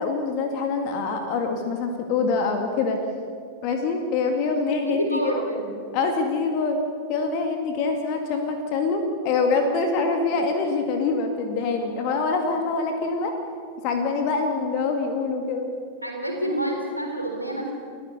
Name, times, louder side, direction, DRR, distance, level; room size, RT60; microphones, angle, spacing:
voice 1, 0.0-3.0 3.6-5.4 5.9-6.8 7.1-13.3 13.8-15.7, left 4 dB, 45° left, 4 dB, 2.1 m, -25 dB
voice 2, 4.8-5.7 16.0-17.7, right 1 dB, 90° left, 2 dB, 3.9 m, -28 dB
29.5 x 14.0 x 6.8 m, 2.2 s
figure-of-eight pair, 90°, 0 cm